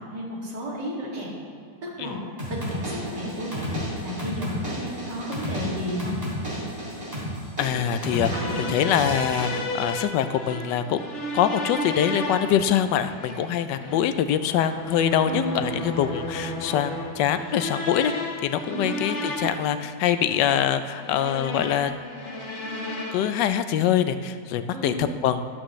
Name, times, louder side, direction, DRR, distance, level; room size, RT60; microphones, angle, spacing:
voice 1, 0.0-1.3 1.8-2.2 2.5-6.2 8.1-8.7 15.2-15.8 18.7-18.9 24.7-25.2, equal, 75° right, -4 dB, 3.0 m, -33 dB
sound 1, 2.4-9.6, equal, 20° right, 3.5 m, -32 dB
voice 2, 7.6-18.1 18.4-22.0 23.1-25.4, left 9 dB, 85° left, 11 dB, 1.2 m, -24 dB
sound 2, 7.9-23.4, left 1 dB, 45° left, 1.4 m, -34 dB
12.5 x 12.0 x 3.2 m, 2.3 s
omnidirectional pair, 1.9 m